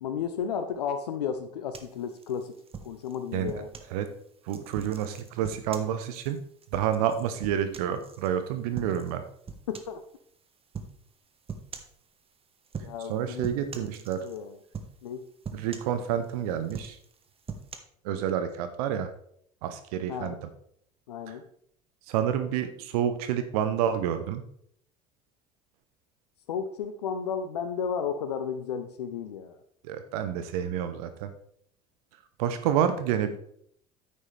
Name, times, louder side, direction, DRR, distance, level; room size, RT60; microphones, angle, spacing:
voice 1, 0.0-2.5 2.8-3.7 9.7-10.0 12.8-13.5 13.8-13.9 14.2-14.5 15.0-15.2 20.1-20.4 21.1-21.4 26.5-29.6, left 7 dB, 80° left, 9 dB, 0.6 m, -33 dB
sound 1, 1.7-3.9 4.5-8.3 8.7-9.2 9.5-10.0 10.7-11.0 11.5-12.0 12.7-13.1 13.4-14.4 14.7-15.1 15.4-16.3 16.6-17.8, right 5 dB, 30° right, 1.2 m, -42 dB
voice 2, 3.3-3.6 3.9-4.1 4.5-6.4 6.7-9.2 13.1-14.2 15.5-17.0 18.0-19.1 19.6-20.4 21.3-21.4 22.1-24.4 29.8-31.3 32.4-33.4, right 9 dB, 65° right, 9 dB, 0.8 m, -29 dB
9.6 x 8.5 x 3.3 m, 0.67 s
figure-of-eight pair, 65°, 20 cm